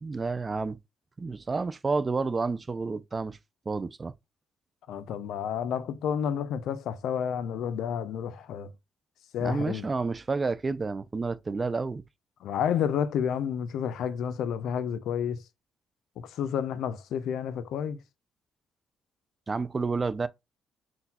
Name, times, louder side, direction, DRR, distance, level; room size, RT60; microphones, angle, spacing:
voice 1, 0.0-0.8 1.2-3.4 3.7-4.1 9.4-12.0 19.5-20.3, right 4 dB, 30° right, 0.4 m, -30 dB
voice 2, 4.9-8.7 9.3-9.9 12.4-15.4 16.2-18.0, left 8 dB, 80° left, 0.5 m, -30 dB
3.9 x 2.3 x 4.1 m
cardioid pair, 90°, 0 cm